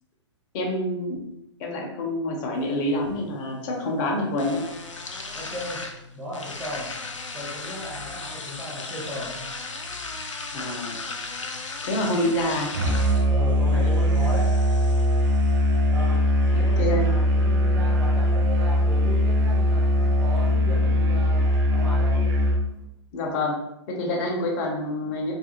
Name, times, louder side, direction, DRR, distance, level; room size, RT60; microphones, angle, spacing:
voice 1, 0.5-1.2 1.6-4.7 10.5-11.0 11.8-12.7 16.5-17.1 23.1-23.6 23.9-25.3, left 1 dB, 40° left, -1 dB, 0.6 m, -27 dB
sound 1, 2.5-20.5, left 3 dB, 90° left, 0.5 m, -38 dB
voice 2, 5.3-5.8 6.1-6.9 7.3-9.5 13.3-14.5 15.9-16.2 16.5-21.4 21.7-22.2, equal, 10° right, -6 dB, 0.8 m, -36 dB
Musical instrument, 12.7-22.7, equal, 45° right, 0.5 m, -21 dB
2.4 x 2.3 x 2.8 m, 0.84 s
hypercardioid pair, 120°, 16 cm